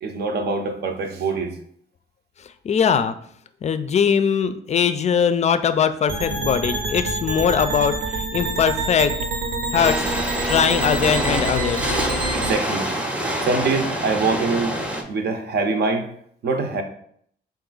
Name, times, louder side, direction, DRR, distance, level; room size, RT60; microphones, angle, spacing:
voice 1, 0.0-1.6 12.3-12.9 13.4-14.7 15.1-16.1 16.4-16.8, right 3 dB, 60° right, 6 dB, 0.6 m, -24 dB
voice 2, 2.6-3.2 3.6-9.2 9.7-10.0 10.4-11.9, left 7 dB, 40° left, 11 dB, 0.4 m, -21 dB
sound 1, 6.1-12.5, right 2 dB, 90° right, 1.0 m, -27 dB
sound 2, 9.8-15.0, right 1 dB, 5° right, 0.6 m, -26 dB
3.8 x 2.6 x 3.8 m, 0.65 s
cardioid pair, 80°, 19 cm